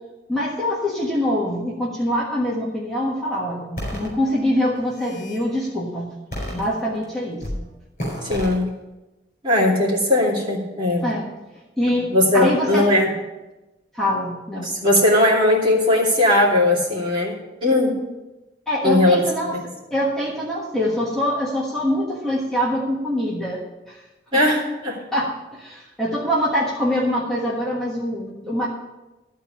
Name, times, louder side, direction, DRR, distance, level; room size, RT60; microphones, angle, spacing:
voice 1, 0.3-6.1 6.5-7.6 11.0-11.3 11.8-12.9 13.9-14.7 18.7-23.6 23.9-24.0 24.3-24.4 25.1-28.7, equal, 5° left, -6 dB, 1.4 m, -24 dB
sound 1, 3.8-4.1 4.8-5.4 6.3-7.0 7.4-7.6 8.0-8.5, equal, 45° left, 4.8 m, -30 dB
voice 2, 8.2-8.7 9.4-11.1 12.1-13.1 14.6-17.3 17.6-18.0 18.8-19.2 19.5-19.7 24.3-25.0, left 1 dB, 25° right, -5 dB, 2.7 m, -18 dB
13.0 x 4.6 x 8.4 m, 1.1 s
head